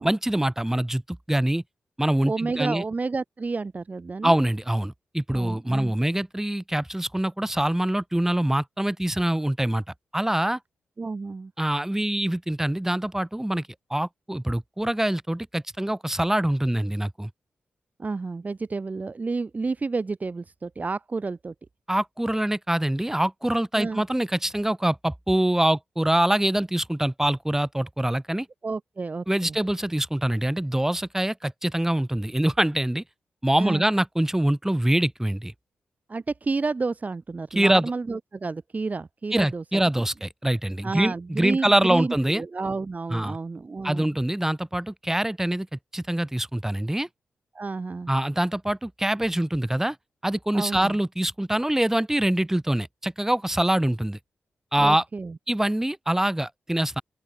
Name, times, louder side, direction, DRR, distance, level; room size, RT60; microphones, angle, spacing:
voice 1, 0.0-1.6 2.0-2.8 4.2-9.8 10.1-10.6 11.6-17.3 21.9-28.5 29.3-33.0 33.4-35.5 37.5-37.9 39.3-42.4 43.1-43.4 43.8-47.1 48.1-50.0 50.2-54.2 54.7-55.0 55.5-57.0, right 1 dB, 10° right, 7.8 m, -24 dB
voice 2, 2.2-4.4 5.3-5.9 11.0-11.5 18.0-21.5 23.7-24.0 28.6-29.6 33.6-33.8 36.1-39.9 40.8-44.2 47.5-48.1 50.5-51.0 54.8-55.4, right 3 dB, 40° right, 2.7 m, -30 dB
open air
cardioid pair, 55°, 4 cm